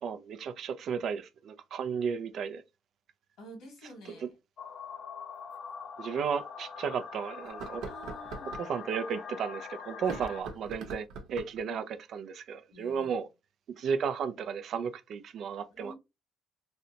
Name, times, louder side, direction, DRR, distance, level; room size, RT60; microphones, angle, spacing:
voice 1, 0.0-2.6 6.0-7.8 8.6-13.3 13.8-15.9, right 6 dB, 65° right, 0.5 m, -34 dB
voice 2, 3.4-4.4 7.9-8.6 10.0-10.6 12.7-13.2 15.7-15.9, equal, 80° left, 1.6 m, -50 dB
sound 1, 4.6-10.4, left 6 dB, 55° left, 0.6 m, -43 dB
sound 2, 5.5-5.6 6.2-6.3 7.4-8.7 9.9-11.6, right 4 dB, 85° right, 0.8 m, -42 dB
3.2 x 2.8 x 2.8 m
cardioid pair, 95°, 0 cm